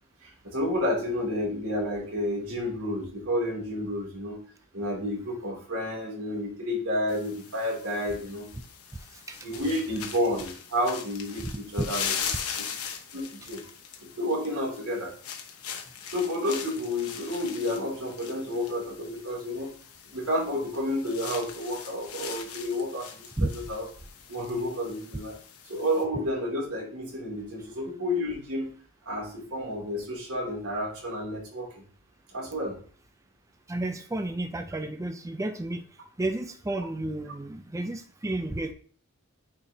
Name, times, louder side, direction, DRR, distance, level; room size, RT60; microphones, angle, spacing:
voice 1, 0.2-4.4 4.7-8.5 9.4-12.1 12.6-12.7 13.1-13.6 14.2-15.1 16.1-19.7 20.1-23.3 23.5-23.9 24.3-25.4 25.7-28.7 29.1-31.8 32.3-32.8, left 1 dB, 90° right, -4 dB, 2.9 m, -30 dB
sound 1, 7.1-26.0, left 7 dB, 80° left, 1.0 m, -40 dB
voice 2, 9.1-9.6 11.4-11.5 11.8-11.9 23.4-23.5 33.7-35.8 36.2-38.7, right 2 dB, 15° right, 7 dB, 0.4 m, -31 dB
8.8 x 4.5 x 2.8 m, 0.44 s
head